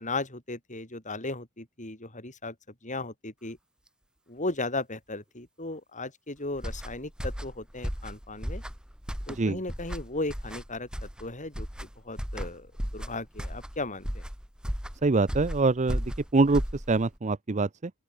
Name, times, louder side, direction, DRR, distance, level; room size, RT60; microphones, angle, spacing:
voice 1, 0.0-2.5 2.8-3.6 4.3-8.6 9.3-11.7 12.0-12.7 12.9-14.2, left 2 dB, 35° left, 5.5 m, -36 dB
sound 1, 6.5-17.2, equal, 5° right, 2.1 m, -35 dB
voice 2, 15.0-17.9, right 3 dB, 30° right, 0.6 m, -25 dB
open air
head